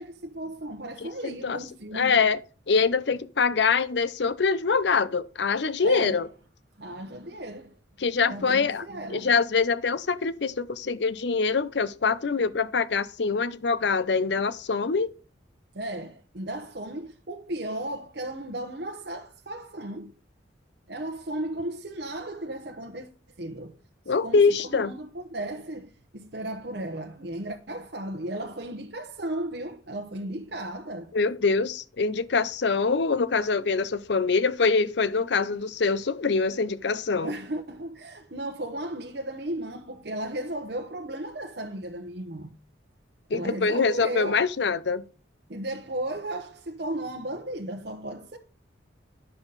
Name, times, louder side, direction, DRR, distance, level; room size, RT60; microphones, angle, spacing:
voice 1, 0.0-2.2 5.8-6.2 6.8-7.7 8.3-9.3 15.7-20.1 20.9-23.1 23.4-23.8 24.2-31.1 37.2-42.6 43.3-44.5 45.5-48.4, right 1 dB, 60° right, 1.0 m, -35 dB
voice 2, 1.2-1.6 1.9-2.4 2.7-6.3 8.0-8.8 9.1-15.1 24.1-24.9 31.1-37.3 43.3-45.0, left 4 dB, 65° left, 0.6 m, -24 dB
10.0 x 7.0 x 4.0 m
head